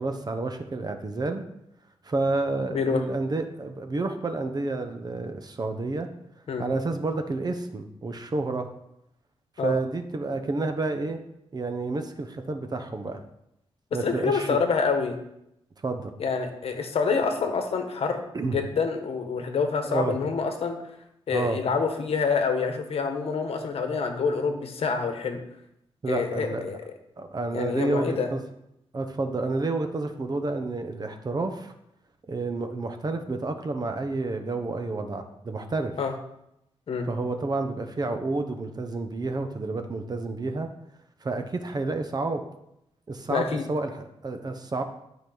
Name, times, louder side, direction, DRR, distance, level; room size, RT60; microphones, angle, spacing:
voice 1, 0.0-1.4 2.0-6.1 6.6-8.7 9.6-11.2 11.5-13.2 13.9-14.6 15.8-16.1 18.3-18.6 19.8-20.2 21.3-21.6 26.0-26.6 27.2-28.4 28.9-31.7 32.3-35.9 37.1-40.7 41.2-42.4 43.1-44.8, right 3 dB, 40° right, 7 dB, 1.0 m, -30 dB
voice 2, 2.7-3.0 6.5-6.6 9.6-9.7 14.0-15.2 16.2-20.8 21.3-25.4 26.1-26.8 27.5-28.3 36.0-36.1 36.9-37.1 43.3-43.6, left 5 dB, 70° left, 5 dB, 1.3 m, -27 dB
12.0 x 5.0 x 4.0 m, 0.80 s
cardioid pair, 85°, 11 cm